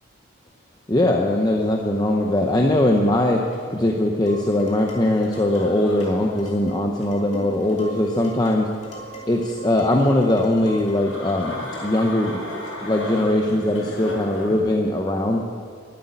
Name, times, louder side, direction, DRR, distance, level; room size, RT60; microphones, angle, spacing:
voice 1, 0.9-3.4 3.7-8.7 9.3-12.4 12.8-15.4, left 1 dB, 20° left, 1 dB, 0.7 m, -20 dB
sound 1, 1.4-14.6, equal, 80° left, 3.9 m, -38 dB
Dishes pots and pans, 4.3-11.1, right 1 dB, 35° left, 2.7 m, -41 dB
12.0 x 8.2 x 9.8 m, 2.1 s
head